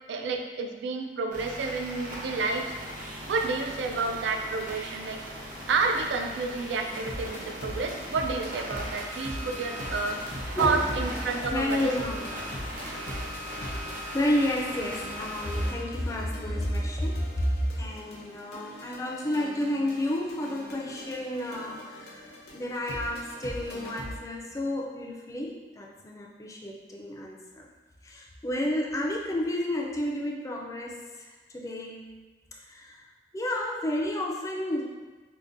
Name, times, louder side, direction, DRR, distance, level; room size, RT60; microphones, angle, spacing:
voice 1, 0.1-2.7 3.3-5.2 5.7-10.2 10.6-11.9, right 4 dB, 80° right, 4 dB, 0.4 m, -30 dB
sound 1, 1.3-15.7, equal, 50° right, 0.7 m, -39 dB
sound 2, 6.9-24.2, equal, 60° left, 0.6 m, -42 dB
voice 2, 10.5-10.9 11.5-12.2 14.1-17.5 17.8-27.7 28.0-32.1 32.6-33.0 33.3-34.8, left 1 dB, 20° left, -1 dB, 0.3 m, -31 dB
4.8 x 2.1 x 2.5 m, 1.3 s
head